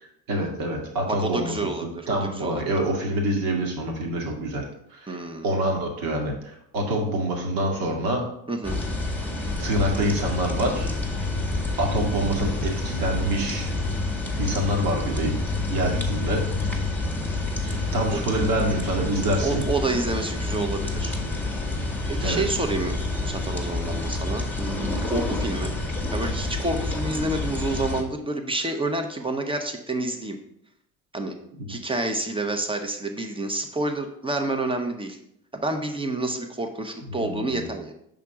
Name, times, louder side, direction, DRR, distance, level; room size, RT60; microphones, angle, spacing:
voice 1, 0.3-4.6 4.9-8.2 9.6-10.9 11.8-13.7 14.4-15.4 15.7-16.4 17.6-19.6 22.2-22.4 31.5-31.8 37.1-37.7, right 1 dB, 60° right, 1 dB, 1.9 m, -26 dB
voice 2, 1.1-1.8 2.2-2.5 5.1-5.5 8.5-8.8 18.1-18.2 19.4-21.2 22.1-25.7 26.1-30.4 31.1-31.3 31.7-35.2 35.5-37.9, right 2 dB, 15° right, 5 dB, 1.0 m, -28 dB
sound 1, 8.6-28.0, left 2 dB, 5° left, 1.3 m, -28 dB
5.8 x 3.8 x 5.8 m, 0.74 s
hypercardioid pair, 65°, 41 cm